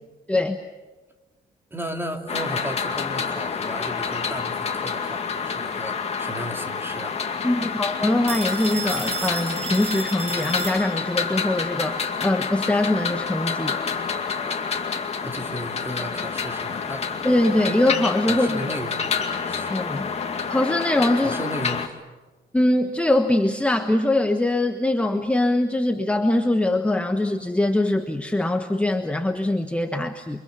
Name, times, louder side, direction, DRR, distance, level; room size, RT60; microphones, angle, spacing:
voice 1, 1.7-7.2 15.2-17.0 18.3-19.7 21.2-21.9, equal, 15° right, 4 dB, 2.7 m, -34 dB
fahnenstange esbeck, 2.3-21.9, left 5 dB, 40° left, 2.4 m, -28 dB
voice 2, 7.4-13.8 17.2-18.6 19.7-20.1 20.5-21.4 22.5-30.4, left 1 dB, 5° left, 5 dB, 1.3 m, -22 dB
Telephone, 8.3-11.3, right 4 dB, 40° right, 3.9 m, -32 dB
29.5 x 25.0 x 7.0 m, 1.2 s
wide cardioid pair, 155°, 17 cm